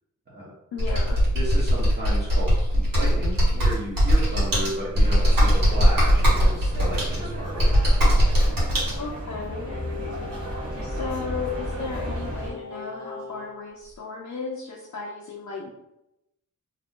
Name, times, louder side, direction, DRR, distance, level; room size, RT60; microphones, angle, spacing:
voice 1, 0.7-1.2 9.0-9.8 10.8-15.7, left 4 dB, 60° left, -4 dB, 0.5 m, -34 dB
Computer keyboard, 0.8-8.9, equal, 85° right, 1.4 m, -20 dB
voice 2, 1.3-7.8, equal, 30° right, -9 dB, 0.8 m, -34 dB
sound 1, 4.9-12.5, equal, 45° right, 1.1 m, -34 dB
Singing, 9.7-13.5 13.8-14.0, left 3 dB, 15° left, 0.7 m, -39 dB
2.7 x 2.4 x 3.6 m, 0.87 s
wide cardioid pair, 170°, 33 cm